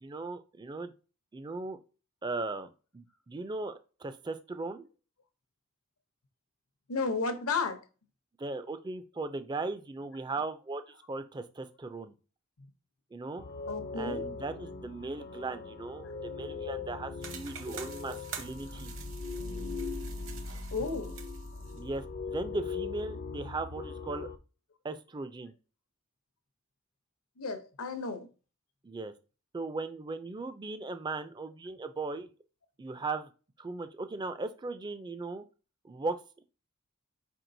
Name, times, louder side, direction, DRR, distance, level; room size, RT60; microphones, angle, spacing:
voice 1, 0.0-0.9 1.3-1.8 2.2-4.9 8.4-12.1 13.1-13.4 14.0-18.9 21.7-24.3 24.8-25.5 28.8-29.1 29.5-32.3 32.8-33.3 33.6-35.4 35.8-36.4, right 3 dB, 20° right, 0.3 m, -38 dB
voice 2, 6.9-7.8 13.7-14.4 20.7-21.2 27.4-28.3, left 4 dB, 75° left, 0.8 m, -33 dB
sound 1, 13.4-24.4, left 4 dB, 45° left, 0.5 m, -40 dB
sound 2, 17.2-21.8, right 7 dB, 65° right, 0.9 m, -47 dB
4.6 x 4.4 x 2.6 m
head